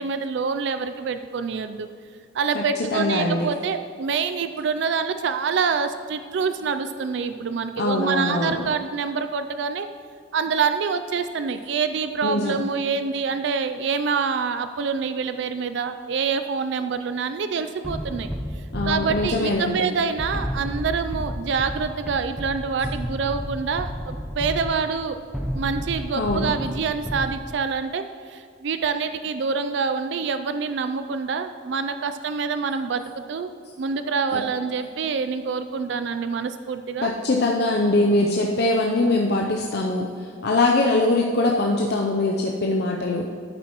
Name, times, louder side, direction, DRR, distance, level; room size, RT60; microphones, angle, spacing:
voice 1, 0.0-1.9 2.3-9.9 10.3-18.3 18.6-25.2 25.5-37.1, right 5 dB, 60° right, 9 dB, 0.3 m, -26 dB
voice 2, 2.9-3.5 7.8-8.6 12.2-12.6 18.7-19.8 26.1-26.5 34.3-34.4 37.0-40.1 40.4-43.3, left 2 dB, 55° left, 0 dB, 0.6 m, -22 dB
sound 1, 17.8-27.8, equal, ahead, 0.6 m, -32 dB
11.0 x 8.3 x 3.0 m, 2.2 s
head